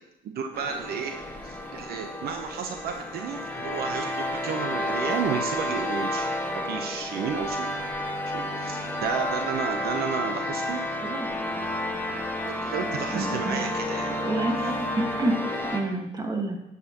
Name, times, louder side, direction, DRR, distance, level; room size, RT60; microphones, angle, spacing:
voice 1, 0.2-1.1 1.4-6.3 6.5-7.7 8.3-10.8 12.4-14.7, right 6 dB, 65° right, 5 dB, 0.9 m, -32 dB
sound 1, 0.5-15.8, left 1 dB, 10° left, 1.7 m, -31 dB
voice 2, 13.1-13.6 13.9-15.4 15.7-16.6, right 2 dB, 25° right, 2 dB, 1.6 m, -29 dB
12.5 x 8.1 x 3.0 m, 0.91 s
cardioid pair, 110°, 17 cm